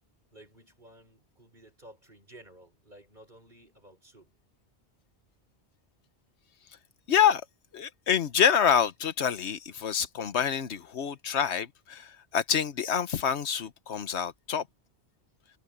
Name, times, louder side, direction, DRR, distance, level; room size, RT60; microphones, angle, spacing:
voice 1, 0.3-4.3, right 1 dB, 45° right, 5.8 m, -54 dB
voice 2, 7.1-7.4 7.7-14.7, left 8 dB, 90° left, 1.3 m, -27 dB
omnidirectional pair, 1.1 m